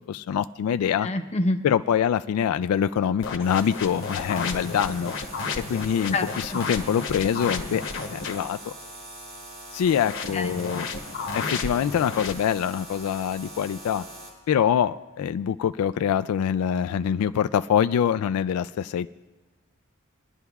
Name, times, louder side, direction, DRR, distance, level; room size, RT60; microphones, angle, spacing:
voice 1, 0.1-1.1 1.6-5.1 5.6-8.7 9.7-10.9 11.3-14.0 14.5-19.1, left 8 dB, 85° left, 10 dB, 0.3 m, -25 dB
voice 2, 1.0-1.7 6.1-6.6 10.3-10.6, left 2 dB, 30° left, 5 dB, 0.7 m, -27 dB
sound 1, 3.2-8.5 9.8-12.3, left 4 dB, 55° left, 1.0 m, -33 dB
sound 2, 3.4-14.3, right 1 dB, 85° right, 4.8 m, -43 dB
24.0 x 11.0 x 2.4 m, 1.2 s
head